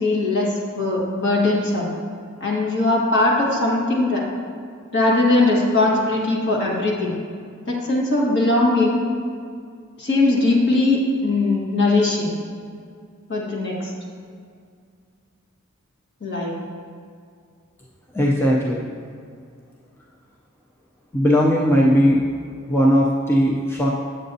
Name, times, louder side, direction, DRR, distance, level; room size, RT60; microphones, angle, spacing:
voice 1, 0.0-1.9 2.4-4.2 4.9-7.2 7.7-9.0 10.0-12.3 13.3-13.9 16.2-16.5, left 2 dB, 55° left, -3 dB, 1.4 m, -20 dB
voice 2, 18.1-18.9 21.1-22.2 22.7-23.9, equal, 10° left, -3 dB, 0.4 m, -18 dB
7.6 x 7.5 x 2.7 m, 2.2 s
head